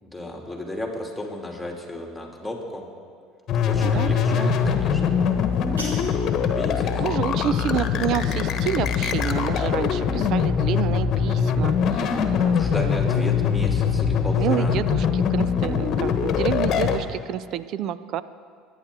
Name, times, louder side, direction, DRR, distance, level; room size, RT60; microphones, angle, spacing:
voice 1, 0.0-2.8 3.7-5.2 6.5-7.1 11.9-14.7, left 1 dB, 5° left, 0 dB, 2.9 m, -34 dB
sound 1, 3.5-17.0, left 7 dB, 50° left, 1.2 m, -22 dB
voice 2, 3.8-4.5 7.0-13.3 14.4-18.2, right 10 dB, 55° right, 16 dB, 0.5 m, -29 dB
sound 2, 5.3-6.3, right 1 dB, 85° right, 3.6 m, -39 dB
24.0 x 10.0 x 3.8 m, 2.1 s
hypercardioid pair, 70°, 0 cm